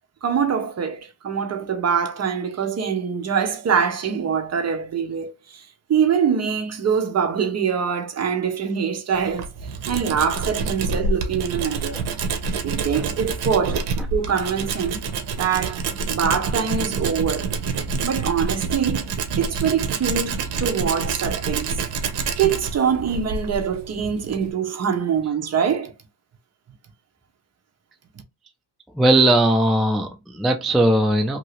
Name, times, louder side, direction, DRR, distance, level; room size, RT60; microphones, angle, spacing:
voice 1, 0.2-5.6 5.9-9.5 9.9-12.0 12.6-13.8 14.1-15.0 15.4-15.8 16.1-17.6 18.0-19.1 19.4-21.8 22.4-25.9, right 7 dB, 40° right, 0.7 m, -24 dB
Tools, 9.1-24.5, right 4 dB, 65° right, 0.8 m, -27 dB
voice 2, 29.0-31.4, right 1 dB, ahead, 0.3 m, -18 dB
2.8 x 2.7 x 3.0 m
cardioid pair, 120°, 42 cm